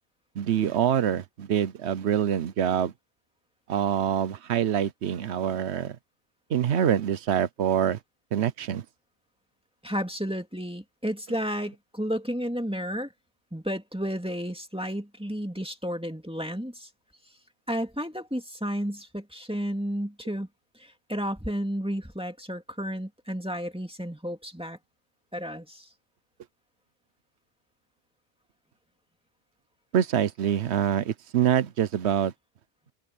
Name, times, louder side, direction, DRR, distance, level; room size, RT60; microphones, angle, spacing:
voice 1, 0.4-2.9 3.7-6.0 6.5-8.0 8.3-8.8 29.9-32.3, right 9 dB, 75° right, 1.0 m, -25 dB
voice 2, 9.8-13.1 13.5-16.9 17.7-20.5 20.8-24.8 25.3-25.9, equal, 5° right, 2.2 m, -32 dB
open air
omnidirectional pair, 1.2 m